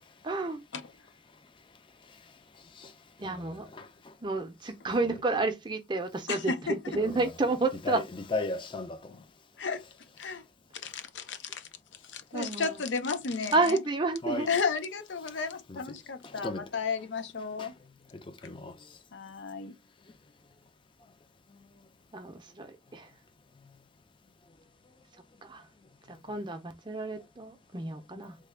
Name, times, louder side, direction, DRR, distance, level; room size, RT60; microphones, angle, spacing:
voice 1, 0.2-0.6 3.2-3.7 4.2-8.0 12.3-12.8 13.5-14.5 22.1-23.1 25.5-25.6 26.1-28.3, right 3 dB, 25° right, 0.5 m, -30 dB
voice 2, 3.2-3.9 5.0-5.2 7.0-7.3 7.8-9.1 14.2-14.5 15.7-15.8 16.2-16.7 17.6-17.7 18.4-18.7 21.5-21.7, left 2 dB, 25° left, 0.4 m, -36 dB
voice 3, 6.3-7.0 9.6-9.8 10.2-10.4 10.8-11.7 12.1-13.8 14.5-17.7 19.1-19.7, left 5 dB, 85° left, 0.6 m, -33 dB
3.3 x 2.2 x 3.3 m
head